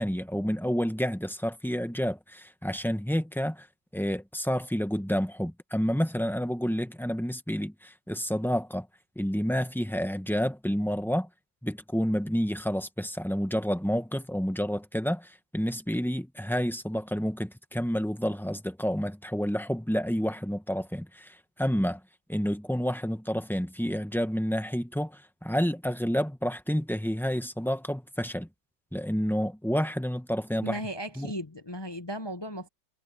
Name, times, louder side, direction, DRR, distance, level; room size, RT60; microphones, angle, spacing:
voice 1, 0.0-3.7 3.9-8.9 9.1-11.3 11.6-22.0 22.3-28.5 28.9-30.8 31.2-31.3, equal, ahead, 1.0 m, -29 dB
voice 2, 30.6-32.7, equal, 35° left, 0.4 m, -36 dB
omnidirectional pair, 2.1 m